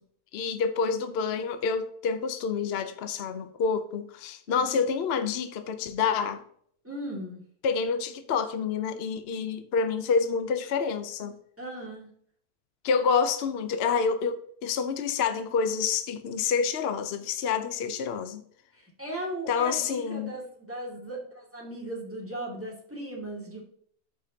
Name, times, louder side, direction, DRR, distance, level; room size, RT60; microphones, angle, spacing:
voice 1, 0.3-6.4 7.6-11.3 12.8-18.4 19.5-20.3, left 5 dB, 55° left, 0.7 m, -28 dB
voice 2, 4.5-4.8 6.8-7.4 11.6-12.1 18.7-23.6, right 1 dB, 10° right, 2.2 m, -37 dB
13.0 x 5.1 x 2.8 m
omnidirectional pair, 1.7 m